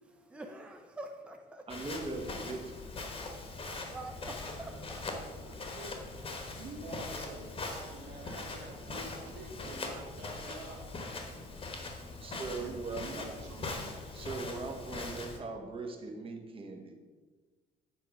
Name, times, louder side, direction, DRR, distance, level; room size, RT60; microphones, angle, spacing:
voice 1, 0.1-1.7 3.1-5.8 11.2-11.6, right 2 dB, 5° right, 4 dB, 0.6 m, -48 dB
Walk footsteps, 1.7-15.4, left 3 dB, 35° left, 1.3 m, -41 dB
voice 2, 1.7-2.8 12.2-13.3 14.1-17.0, right 3 dB, 30° right, 3 dB, 1.1 m, -40 dB
voice 3, 5.4-5.9 6.3-10.9 12.2-13.7, right 3 dB, 85° right, 0 dB, 1.6 m, -48 dB
7.4 x 4.6 x 5.2 m, 1.3 s
cardioid pair, 110°, 17 cm